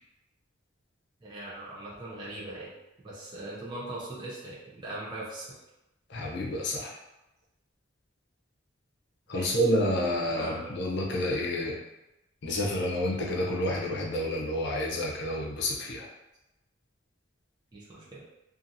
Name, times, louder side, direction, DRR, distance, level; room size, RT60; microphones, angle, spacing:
voice 1, 1.2-2.7 3.0-5.6 9.3-9.6 10.3-10.6 17.7-18.2, right 1 dB, 25° right, -8 dB, 0.6 m, -40 dB
voice 2, 6.1-6.9 9.3-11.8 12.4-16.1, left 1 dB, 60° left, -2 dB, 0.6 m, -29 dB
2.7 x 2.5 x 2.5 m, 0.95 s
head